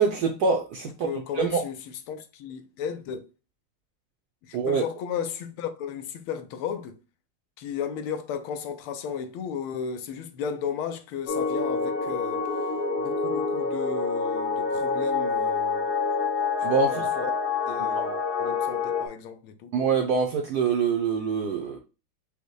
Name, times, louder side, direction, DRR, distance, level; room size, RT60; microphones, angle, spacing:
voice 1, 0.0-1.1 1.3-1.6 4.5-4.8 16.6-17.1 18.0-18.1 19.7-21.8, right 5 dB, 75° right, 0.9 m, -25 dB
voice 2, 1.0-1.8 2.1-3.3 4.4-7.0 7.6-12.5 13.0-15.9 16.7-17.3 17.7-18.1 18.4-19.7, left 7 dB, 85° left, 1.5 m, -34 dB
sound 1, 11.3-19.1, left 4 dB, 70° left, 1.7 m, -27 dB
5.3 x 2.2 x 4.6 m
omnidirectional pair, 2.3 m